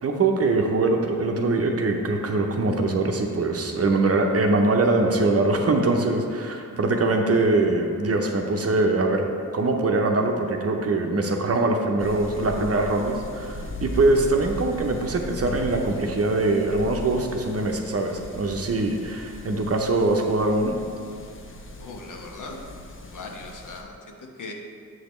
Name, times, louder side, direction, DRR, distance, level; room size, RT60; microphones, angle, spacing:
voice 1, 0.0-9.3 9.5-20.8, right 2 dB, 40° right, 3 dB, 0.7 m, -23 dB
sound 1, 12.0-23.8, left 1 dB, 35° left, 0.7 m, -38 dB
voice 2, 21.8-22.6 23.0-24.5, left 3 dB, 55° left, 1 dB, 1.0 m, -39 dB
7.6 x 5.1 x 3.1 m, 2.4 s
cardioid pair, 75°, 37 cm